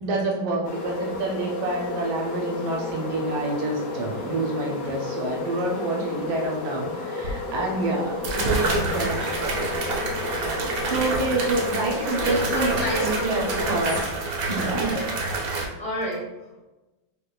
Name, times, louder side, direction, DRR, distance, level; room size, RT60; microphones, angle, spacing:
voice 1, 0.0-10.5 10.9-14.2 14.5-15.0, right 2 dB, 85° right, -1 dB, 1.5 m, -28 dB
sound 1, 0.6-14.0, left 3 dB, 80° left, 0.6 m, -33 dB
sound 2, 7.2-7.3 8.2-15.6, right 3 dB, 70° right, 0.8 m, -28 dB
voice 2, 9.2-9.8 11.2-11.5 12.0-13.3 14.4-15.0 15.3-16.2, equal, 30° left, -6 dB, 0.8 m, -31 dB
5.2 x 2.1 x 2.3 m, 1.1 s
omnidirectional pair, 2.1 m